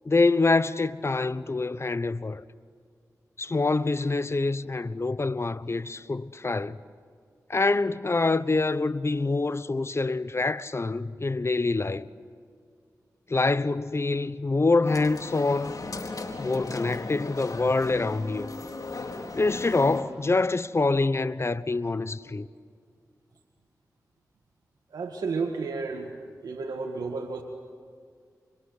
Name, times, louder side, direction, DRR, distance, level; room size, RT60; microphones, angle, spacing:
voice 1, 0.0-2.4 3.4-6.8 7.5-12.1 13.3-15.8 16.4-18.5 19.3-22.5, left 3 dB, 40° left, 1.0 m, -25 dB
sound 1, 14.8-20.0, left 3 dB, 60° left, 4.0 m, -37 dB
voice 2, 24.9-26.1 26.4-27.4, right 4 dB, 90° right, 2.1 m, -32 dB
29.0 x 25.0 x 8.2 m
cardioid pair, 45°, 7 cm